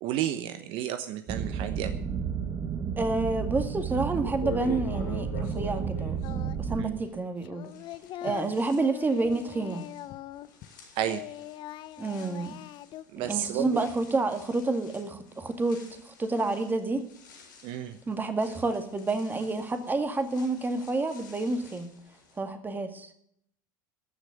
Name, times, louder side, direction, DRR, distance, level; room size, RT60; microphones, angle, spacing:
voice 1, 0.0-1.9 6.8-7.0 10.9-11.2 13.1-13.8 17.6-18.0, right 11 dB, 60° right, 9 dB, 1.0 m, -32 dB
sound 1, 1.3-6.8, right 6 dB, 40° right, 1.5 m, -32 dB
voice 2, 3.0-7.7 8.2-9.8 12.0-12.6 13.2-17.0 18.1-21.9 22.4-23.1, right 3 dB, 20° right, 7 dB, 2.1 m, -29 dB
sound 2, 3.7-3.8 4.2-7.3 7.6-22.4, left 7 dB, 80° left, 5.9 m, -47 dB
Singing, 6.2-6.8 7.1-10.7 11.0-13.0, left 13 dB, 50° left, 0.7 m, -42 dB
14.5 x 6.3 x 9.5 m, 0.69 s
hypercardioid pair, 85°, 10 cm